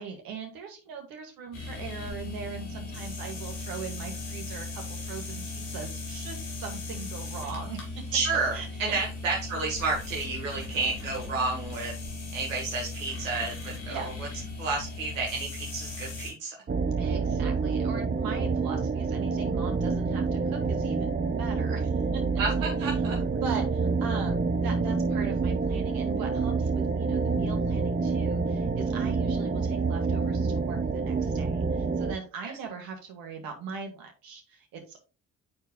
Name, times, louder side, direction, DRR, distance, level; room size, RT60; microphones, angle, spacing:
voice 1, 0.0-8.0 8.5-9.0 13.9-14.1 17.0-22.2 23.3-35.0, right 5 dB, 65° right, 3 dB, 1.6 m, -40 dB
sound 1, 1.5-16.3, left 3 dB, 75° left, 1.8 m, -38 dB
voice 2, 8.1-11.9 12.3-14.0 14.6-16.6 22.4-23.2 32.4-32.5, right 3 dB, 85° right, -3 dB, 1.3 m, -31 dB
sound 2, 16.7-32.1, right 4 dB, 25° right, 0.9 m, -27 dB
10.0 x 4.5 x 2.2 m, 0.33 s
hypercardioid pair, 45°, 38 cm